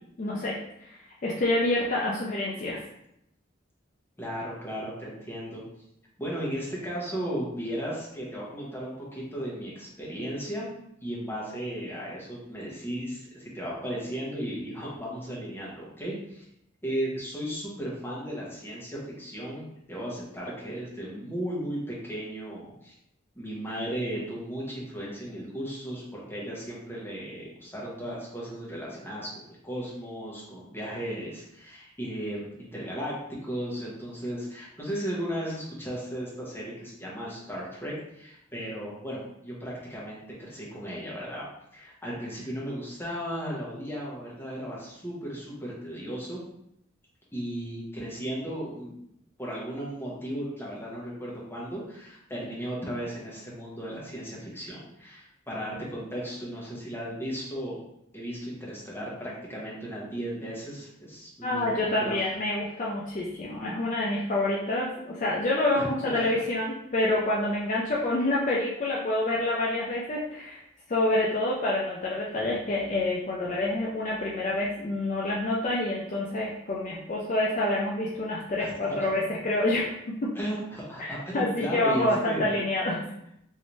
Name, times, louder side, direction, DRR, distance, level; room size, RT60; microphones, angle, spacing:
voice 1, 0.2-2.8 61.4-70.6 70.9-80.3 81.0-83.1, left 1 dB, 40° left, -4 dB, 0.4 m, -27 dB
voice 2, 4.2-5.6 6.2-10.7 11.0-16.4 16.8-22.9 23.3-33.2 33.4-41.4 41.7-46.4 47.3-48.9 49.4-57.8 58.1-62.2 65.7-66.4 78.6-78.7 79.0-79.1 80.3-82.6, equal, 10° left, -6 dB, 0.9 m, -35 dB
3.2 x 2.7 x 3.0 m, 0.78 s
head